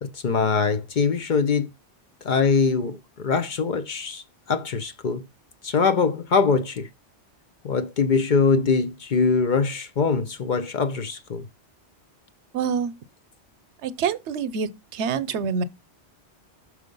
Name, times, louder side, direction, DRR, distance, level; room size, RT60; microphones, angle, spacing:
voice 1, 0.0-1.7 2.2-5.2 5.6-6.9 7.6-11.5, left 5 dB, 55° left, 0.7 m, -23 dB
voice 2, 12.5-12.9 13.8-15.6, right 6 dB, 85° right, 0.9 m, -26 dB
6.2 x 4.7 x 5.3 m
omnidirectional pair, 1.1 m